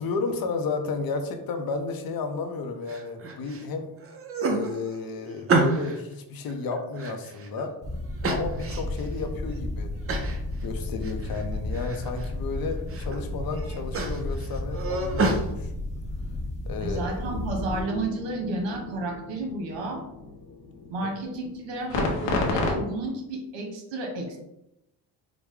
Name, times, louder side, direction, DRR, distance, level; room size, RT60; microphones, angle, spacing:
voice 1, 0.0-4.0 4.4-7.7 8.3-9.9 10.6-15.7 16.7-17.3, left 4 dB, 55° left, 6 dB, 0.7 m, -32 dB
sound 1, 2.9-3.6 4.0-6.0 6.5-7.7 8.2-9.1 9.5-9.6 10.1-10.4 10.8-11.4 11.7-12.3 12.7-13.2 13.5-15.4, right 3 dB, 30° right, 0.6 m, -29 dB
sound 2, 7.8-17.8, left 1 dB, 15° left, 0.8 m, -33 dB
voice 2, 16.8-20.0 20.9-24.4, right 2 dB, 85° right, 1 dB, 1.2 m, -32 dB
sound 3, 17.2-22.7, left 2 dB, 85° left, 1.1 m, -33 dB
4.8 x 2.2 x 3.6 m, 0.87 s
cardioid pair, 110°, 43 cm